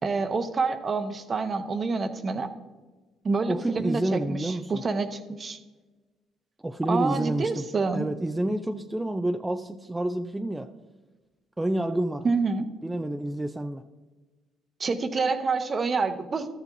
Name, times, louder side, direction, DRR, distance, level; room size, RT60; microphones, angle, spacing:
voice 1, 0.0-2.5 3.2-5.6 6.9-8.1 12.2-12.7 14.8-16.5, right 4 dB, 40° right, 9 dB, 0.9 m, -27 dB
voice 2, 3.5-4.8 6.6-7.6 7.9-10.7 11.6-12.3 12.8-13.8, right 1 dB, 15° right, 6 dB, 0.5 m, -29 dB
13.0 x 7.2 x 2.6 m, 1.2 s
hypercardioid pair, 50°, 0 cm